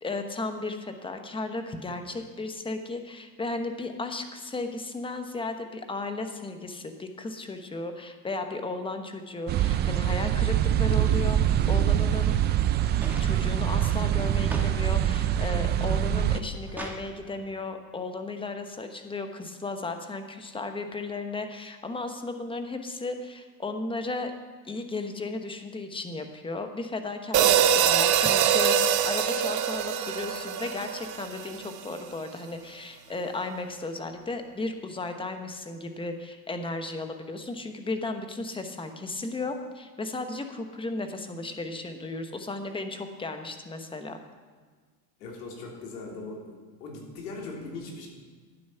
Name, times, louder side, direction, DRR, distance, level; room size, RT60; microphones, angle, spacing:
voice 1, 0.0-11.4 11.7-12.3 13.2-24.3 24.6-28.8 29.0-44.2, left 3 dB, 10° left, 6 dB, 1.0 m, -35 dB
forest near moms house, 9.5-16.4, right 11 dB, 25° right, 0.3 m, -24 dB
sound 1, 13.0-14.8 15.1-15.7 16.2-17.1 18.3-18.4, right 1 dB, 5° right, 1.5 m, -41 dB
sound 2, 27.3-31.7, right 9 dB, 40° right, 0.9 m, -24 dB
voice 2, 45.2-46.5 46.8-48.1, left 3 dB, 85° left, -1 dB, 3.4 m, -39 dB
11.5 x 9.4 x 5.7 m, 1.5 s
supercardioid pair, 120°, 46 cm